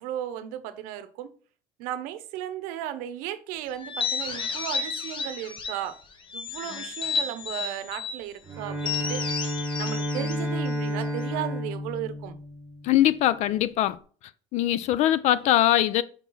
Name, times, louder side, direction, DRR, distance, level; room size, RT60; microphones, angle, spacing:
voice 1, 0.0-1.3 1.8-6.0 6.3-9.4 9.8-12.4, right 11 dB, 80° right, 0.8 m, -35 dB
sound 1, 3.8-5.9 6.3-8.2 8.8-11.3, left 5 dB, 35° left, 1.0 m, -32 dB
Bowed string instrument, 8.4-13.1, left 1 dB, 15° right, 1.0 m, -31 dB
voice 2, 12.8-14.0 14.5-16.0, left 13 dB, 55° left, 0.5 m, -22 dB
5.2 x 4.6 x 4.1 m
cardioid pair, 150°, 14 cm